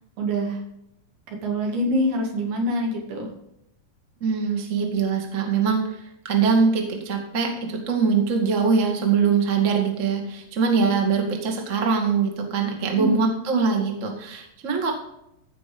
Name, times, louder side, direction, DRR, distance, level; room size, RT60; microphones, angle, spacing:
voice 1, 0.2-0.6 1.3-3.3 12.9-13.4, equal, 70° right, 1 dB, 4.2 m, -25 dB
voice 2, 4.2-14.9, right 5 dB, 40° right, 2 dB, 1.0 m, -23 dB
14.5 x 5.3 x 5.2 m, 0.81 s
omnidirectional pair, 4.8 m